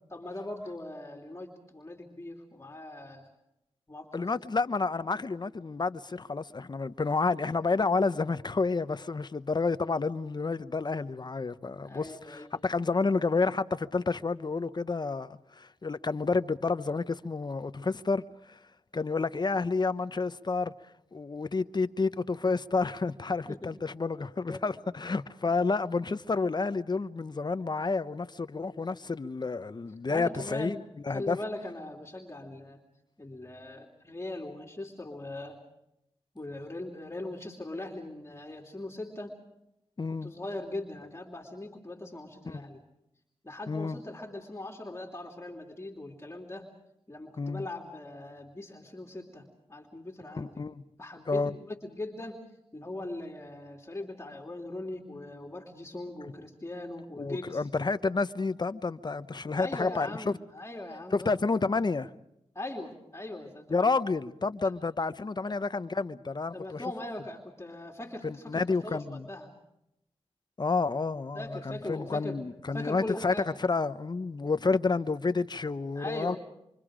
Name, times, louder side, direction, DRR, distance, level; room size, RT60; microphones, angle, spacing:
voice 1, 0.1-3.3 3.9-4.3 11.8-12.5 23.5-23.7 24.5-24.7 30.1-30.8 31.1-32.8 33.2-35.6 36.3-39.4 40.1-42.8 43.4-46.7 47.1-50.6 51.0-52.4 52.7-57.6 59.5-61.3 62.5-63.9 64.6-64.7 65.5-65.6 66.5-69.5 71.3-72.4 72.7-73.5 75.9-76.4, left 2 dB, 25° left, 3.0 m, -40 dB
voice 2, 4.1-18.6 18.9-20.7 21.1-30.8 31.1-31.4 40.0-40.3 42.5-42.6 43.7-44.0 47.4-47.6 50.4-50.8 51.3-51.6 57.2-60.3 61.1-62.1 63.7-66.8 68.2-69.3 70.6-73.3 73.6-76.4, left 4 dB, 40° left, 0.9 m, -30 dB
27.5 x 24.5 x 5.1 m
cardioid pair, 60°, 11 cm